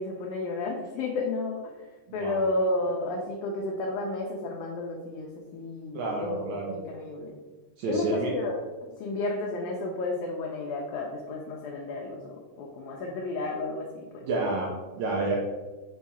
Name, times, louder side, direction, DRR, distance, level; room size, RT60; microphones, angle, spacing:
voice 1, 0.0-1.7 2.1-6.4 6.7-7.4 7.8-14.2, left 2 dB, 80° left, -1 dB, 1.8 m, -32 dB
voice 2, 2.1-2.4 5.9-6.8 7.8-8.3 14.2-15.4, right 2 dB, 85° right, -2 dB, 1.6 m, -29 dB
5.4 x 2.4 x 4.0 m, 1.2 s
omnidirectional pair, 3.8 m